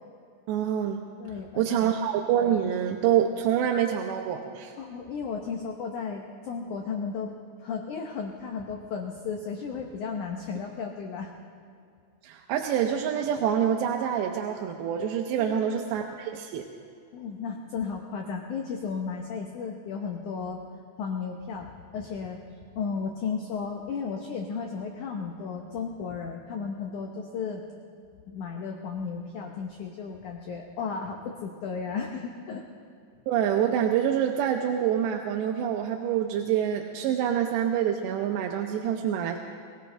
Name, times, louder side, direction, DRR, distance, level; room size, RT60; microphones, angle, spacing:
voice 1, 0.5-1.0 1.6-4.7 12.2-16.7 33.3-39.4, right 9 dB, 90° right, 2 dB, 3.0 m, -26 dB
voice 2, 1.2-1.9 4.8-7.3 7.6-11.3 15.4-16.0 17.1-20.6 21.0-22.4 22.7-27.6 28.3-32.6 37.3-37.4, left 5 dB, 80° left, 2 dB, 1.7 m, -34 dB
23.0 x 16.5 x 3.3 m, 2.4 s
omnidirectional pair, 4.9 m